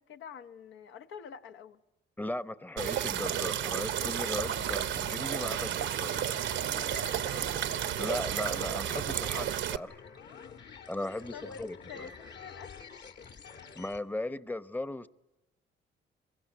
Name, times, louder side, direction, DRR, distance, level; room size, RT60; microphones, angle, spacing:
voice 1, 0.0-1.8 6.7-7.6 11.0-12.1 12.4-12.7, left 7 dB, 80° left, 1.2 m, -46 dB
voice 2, 2.2-6.1 8.0-10.0 10.9-12.1 13.8-15.1, left 1 dB, 10° left, 0.9 m, -37 dB
sound 1, 2.8-9.8, right 10 dB, 70° right, 0.9 m, -32 dB
sound 2, 4.0-14.0, left 6 dB, 60° left, 2.3 m, -49 dB
25.5 x 23.0 x 9.2 m
cardioid pair, 90°, 20 cm